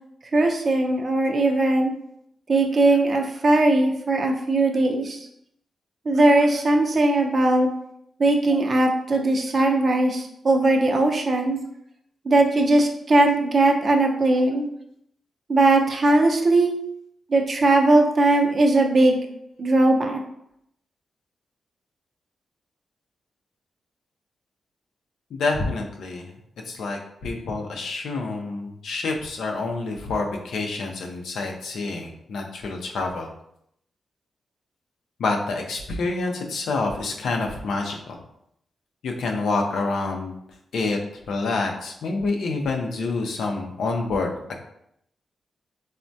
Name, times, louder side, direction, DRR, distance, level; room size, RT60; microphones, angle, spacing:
voice 1, 0.3-1.9 2.5-5.2 6.1-7.7 8.2-11.6 12.3-14.7 15.5-16.7 17.3-19.2 19.6-20.2, right 2 dB, 50° right, 3 dB, 0.5 m, -19 dB
voice 2, 25.3-26.3 26.7-33.3 35.2-38.2 39.0-40.3 40.7-41.0 41.3-44.3, left 3 dB, 85° left, 2 dB, 0.5 m, -27 dB
3.3 x 2.1 x 2.6 m, 0.74 s
cardioid pair, 60°, 0 cm